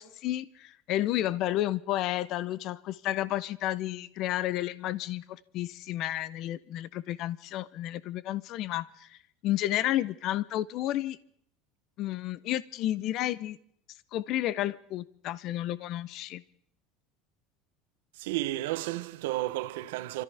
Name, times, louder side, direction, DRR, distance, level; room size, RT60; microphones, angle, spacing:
voice 1, 0.0-9.2 9.4-11.2 12.0-13.6 14.1-16.4, left 14 dB, 50° left, 0.5 m, -31 dB
voice 2, 18.2-20.2, right 16 dB, 85° right, 0.8 m, -32 dB
29.5 x 14.0 x 3.4 m
supercardioid pair, 135°, 0 cm